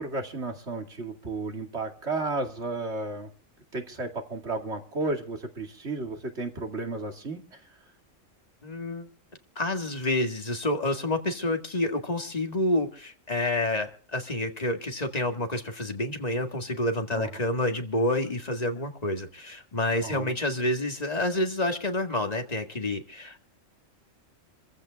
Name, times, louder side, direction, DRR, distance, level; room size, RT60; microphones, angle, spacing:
voice 1, 0.0-3.3 3.7-7.6 17.1-17.3 20.0-20.3, right 3 dB, 55° right, 3 dB, 2.7 m, -33 dB
voice 2, 8.6-9.1 9.6-23.4, left 1 dB, 30° left, 4 dB, 2.0 m, -28 dB
27.0 x 15.0 x 2.4 m, 0.41 s
omnidirectional pair, 1.4 m